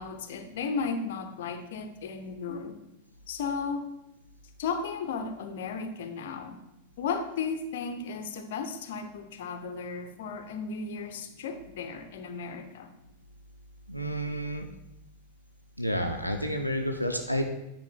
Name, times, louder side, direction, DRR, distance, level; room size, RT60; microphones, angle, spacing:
voice 1, 0.0-2.8 3.3-3.9 4.6-6.6 7.0-12.9, left 5 dB, 55° left, 7 dB, 0.8 m, -34 dB
voice 2, 13.9-14.7 15.8-17.5, equal, 90° left, 3 dB, 0.6 m, -30 dB
9.4 x 4.6 x 4.5 m, 0.88 s
figure-of-eight pair, 90°, 0 cm